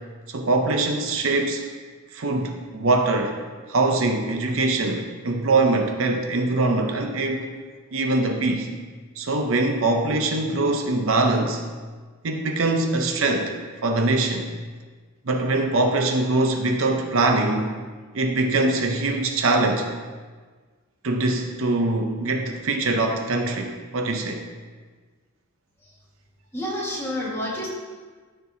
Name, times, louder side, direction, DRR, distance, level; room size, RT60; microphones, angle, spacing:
voice 1, 0.3-1.6 2.1-3.4 3.7-7.5 7.9-8.7 9.2-11.6 12.2-13.5 13.8-14.5 15.3-17.7 18.1-19.9 21.0-24.4, right 2 dB, 65° right, 3 dB, 0.6 m, -23 dB
voice 2, 26.5-27.7, left 1 dB, 10° left, -6 dB, 1.5 m, -29 dB
13.5 x 4.5 x 2.7 m, 1.5 s
head